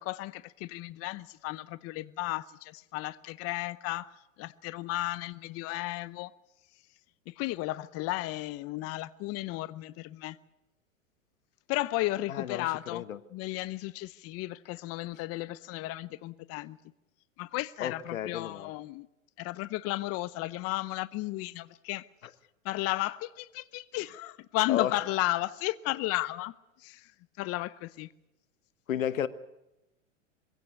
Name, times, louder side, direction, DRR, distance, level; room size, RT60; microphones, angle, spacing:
voice 1, 0.0-4.1 4.4-6.3 7.3-10.4 11.7-13.0 13.3-16.8 17.4-19.1 19.4-22.1 22.6-26.5 26.8-27.1 27.4-28.1, left 18 dB, 35° left, 0.8 m, -34 dB
voice 2, 12.3-12.6 12.9-13.2 17.8-18.7 24.7-24.9 28.9-29.3, left 10 dB, 85° left, 1.3 m, -32 dB
22.5 x 16.5 x 9.3 m
hypercardioid pair, 105°, 39 cm